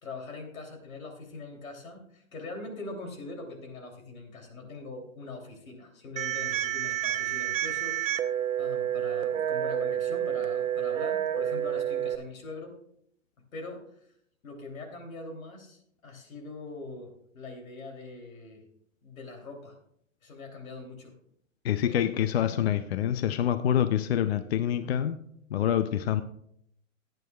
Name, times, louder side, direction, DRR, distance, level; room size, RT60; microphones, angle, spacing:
voice 1, 0.0-8.1 8.6-12.8 13.5-14.1 14.4-18.6 19.0-19.8 20.2-21.1 21.8-22.0, left 3 dB, 90° left, 2 dB, 3.1 m, -42 dB
sound 1, 6.2-12.2, right 10 dB, 70° right, 0.8 m, -29 dB
voice 2, 21.6-25.2 25.5-26.2, left 10 dB, 50° left, 11 dB, 0.5 m, -26 dB
18.0 x 9.1 x 2.3 m, 0.71 s
hypercardioid pair, 165°, 40 cm